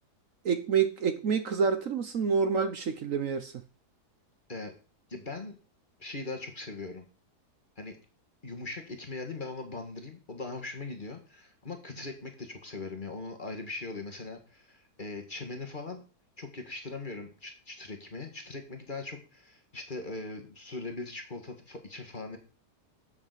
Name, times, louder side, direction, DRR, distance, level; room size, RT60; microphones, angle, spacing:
voice 1, 0.4-3.5, right 6 dB, 60° right, 1.2 m, -27 dB
voice 2, 5.1-5.6 6.0-7.1 7.8-8.0 8.4-16.0 16.4-22.4, left 3 dB, 30° left, 1.9 m, -40 dB
8.3 x 6.9 x 6.7 m
omnidirectional pair, 1.8 m